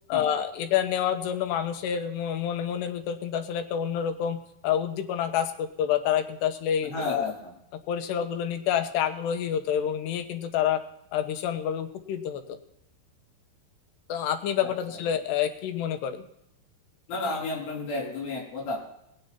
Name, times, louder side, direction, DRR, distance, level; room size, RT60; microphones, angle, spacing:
voice 1, 0.1-7.3 7.9-10.8 11.1-12.6 14.1-16.2, left 9 dB, 90° left, 8 dB, 3.2 m, -28 dB
voice 2, 6.8-7.3 14.6-14.7 17.1-18.8, left 2 dB, 65° left, -1 dB, 5.6 m, -32 dB
19.5 x 9.5 x 4.3 m, 0.77 s
omnidirectional pair, 4.7 m